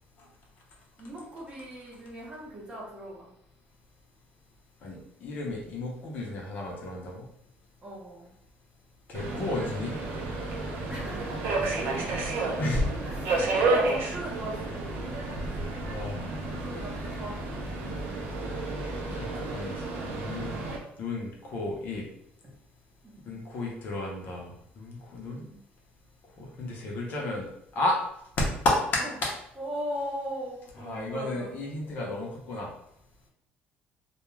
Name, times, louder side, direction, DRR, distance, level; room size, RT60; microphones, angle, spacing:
voice 1, 1.0-3.3 7.8-8.3 10.9-12.6 13.0-14.8 16.5-17.8 22.4-22.5 23.0-23.3 25.4-25.6 29.0-29.1 29.6-31.5, right 1 dB, 25° right, -4 dB, 0.8 m, -39 dB
voice 2, 4.8-7.2 9.1-10.0 11.7-11.8 12.6-12.9 15.9-16.6 19.1-20.6 21.0-22.0 23.3-25.4 26.4-28.0 28.4-29.3 30.8-32.7, left 2 dB, 50° left, -2 dB, 0.7 m, -32 dB
Subway metro underground, 9.1-20.8, right 3 dB, 60° right, 0.6 m, -31 dB
2.3 x 2.2 x 3.0 m, 0.75 s
cardioid pair, 160°, 4 cm